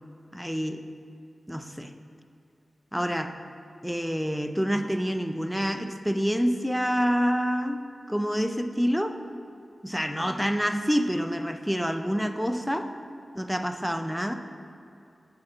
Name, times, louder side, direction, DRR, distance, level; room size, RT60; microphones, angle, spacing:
voice 1, 0.3-0.9 1.5-1.9 2.9-3.4 3.8-7.8 8.1-9.2 9.8-12.9 13.4-14.3, equal, ahead, 8 dB, 0.5 m, -27 dB
7.6 x 7.2 x 4.4 m, 2.5 s
cardioid pair, 50°, 0 cm